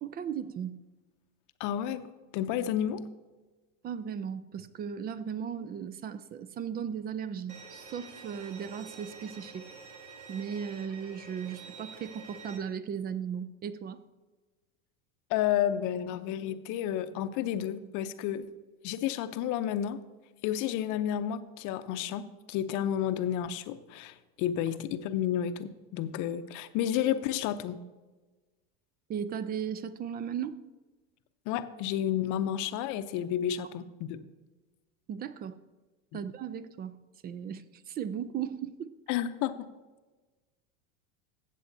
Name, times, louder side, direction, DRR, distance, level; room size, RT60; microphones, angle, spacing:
voice 1, 0.0-0.8 3.8-9.7 10.3-14.0 29.1-30.6 35.1-35.6 36.1-38.9, right 8 dB, 25° right, 15 dB, 0.4 m, -36 dB
voice 2, 1.6-2.0 2.3-3.1 15.3-18.4 18.8-20.0 20.4-27.8 31.5-34.2 36.1-36.2 39.1-39.7, left 10 dB, 50° left, 11 dB, 0.7 m, -31 dB
Bowed string instrument, 7.5-12.6, right 4 dB, 55° right, 1.4 m, -48 dB
15.0 x 7.6 x 2.7 m, 1.2 s
supercardioid pair, 105°, 39 cm